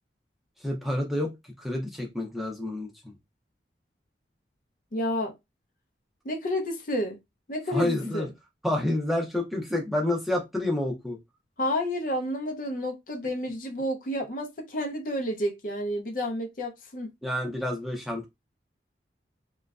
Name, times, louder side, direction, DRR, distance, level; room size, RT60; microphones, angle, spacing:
voice 1, 0.6-1.3 1.6-3.1 7.7-8.3 8.6-11.2 17.2-18.3, left 1 dB, ahead, 0.5 m, -29 dB
voice 2, 4.9-5.3 6.2-7.2 7.5-8.3 11.6-17.1, left 1 dB, 45° left, 0.6 m, -30 dB
2.9 x 2.3 x 2.3 m
head